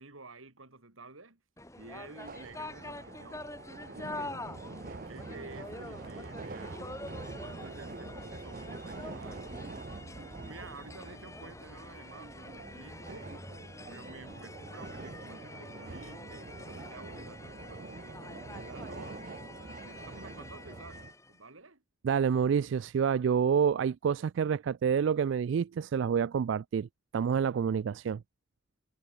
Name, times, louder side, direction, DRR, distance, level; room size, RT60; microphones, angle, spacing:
voice 1, 0.0-1.4 1.7-4.4 4.8-6.9 7.4-9.4 10.4-13.5 13.9-19.2 19.6-21.0 21.3-21.8, right 3 dB, 90° right, 3.3 m, -51 dB
sound 1, 1.6-21.4, left 2 dB, 15° left, 6.0 m, -46 dB
sound 2, 2.2-21.1, right 3 dB, 45° right, 0.7 m, -45 dB
voice 2, 22.0-28.2, right 7 dB, 70° right, 0.3 m, -28 dB
head